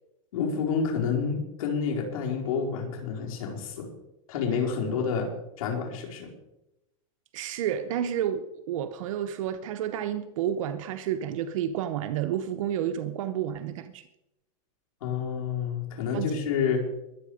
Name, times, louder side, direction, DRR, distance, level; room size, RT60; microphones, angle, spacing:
voice 1, 0.3-3.9 4.3-5.3 5.6-6.3 15.0-16.8, left 6 dB, 75° left, 4.7 m, -29 dB
voice 2, 7.3-14.1 16.1-16.4, right 10 dB, 65° right, 0.9 m, -30 dB
22.0 x 8.5 x 5.0 m
supercardioid pair, 150°, 18 cm